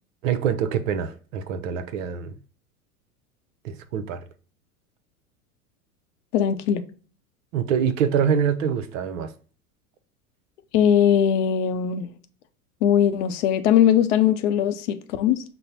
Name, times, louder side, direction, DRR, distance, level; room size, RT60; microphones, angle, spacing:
voice 1, 0.2-2.4 3.6-4.2 7.5-9.3, right 7 dB, 60° right, 0.7 m, -25 dB
voice 2, 6.3-6.8 10.7-12.1 12.8-15.4, left 9 dB, 55° left, 0.6 m, -20 dB
5.2 x 2.0 x 4.2 m
figure-of-eight pair, 85°, 44 cm